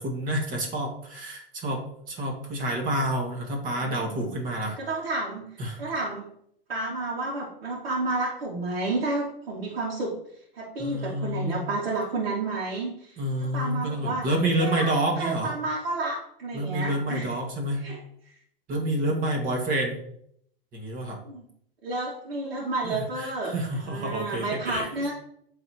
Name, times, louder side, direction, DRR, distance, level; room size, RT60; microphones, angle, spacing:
voice 1, 0.0-4.8 5.6-5.8 10.8-11.6 13.2-15.5 16.5-17.8 18.7-19.9 20.7-21.2 22.8-25.1, right 1 dB, 30° right, 2 dB, 1.8 m, -28 dB
voice 2, 3.8-4.3 4.8-5.4 5.8-6.3 6.7-10.1 10.5-13.2 13.5-14.3 14.6-14.9 15.2-17.3 17.8-18.0 21.2-21.5 21.8-23.5 23.8-25.1, right 2 dB, 80° right, -7 dB, 2.3 m, -30 dB
11.5 x 4.0 x 3.0 m, 0.70 s
hypercardioid pair, 130°, 29 cm